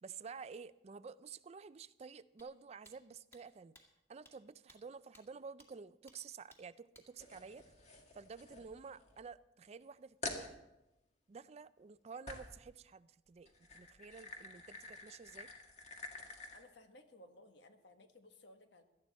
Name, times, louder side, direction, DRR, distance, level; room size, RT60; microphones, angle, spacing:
voice 1, 0.0-3.8 4.1-7.6 8.1-10.6 11.3-15.5, right 5 dB, 35° right, 15 dB, 0.4 m, -51 dB
sound 1, 2.4-2.5 2.8-3.0 3.3-3.4 3.7-3.8 4.2-4.3 4.7-4.8 5.1-5.2 5.6-5.7 6.1-6.2 6.5-6.6 6.9-7.1, left 1 dB, 15° left, 1.9 m, -61 dB
sound 2, 7.2-9.3 9.7-9.8 10.2-10.5 12.3-12.6 13.4-16.6, left 3 dB, 40° left, 1.9 m, -48 dB
voice 2, 16.5-18.8, left 1 dB, 70° left, 6 dB, 1.5 m, -59 dB
17.5 x 13.0 x 4.2 m, 0.95 s
head